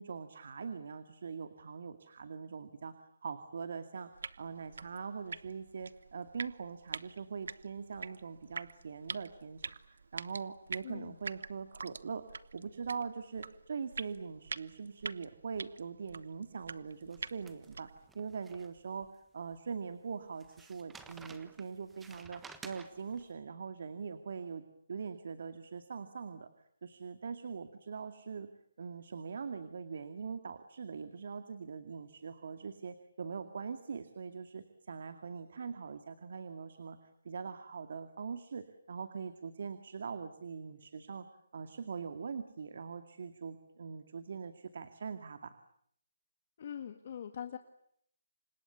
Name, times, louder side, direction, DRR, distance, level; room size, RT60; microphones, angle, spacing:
voice 1, 0.0-2.9 3.2-4.1 4.4-17.9 18.1-19.1 19.3-26.5 26.8-28.5 28.8-37.0 37.2-41.3 41.5-45.5, right 5 dB, 60° right, 9 dB, 2.2 m, -42 dB
sound 1, 4.1-18.1, right 4 dB, 75° right, 1.1 m, -46 dB
voice 2, 10.8-11.2 46.6-47.6, left 8 dB, 45° left, 7 dB, 1.9 m, -42 dB
sound 2, 17.0-19.1 19.5-19.6 20.4-23.2, right 5 dB, 5° right, 1.3 m, -54 dB
29.0 x 26.5 x 7.1 m, 0.68 s
hypercardioid pair, 165°, 0 cm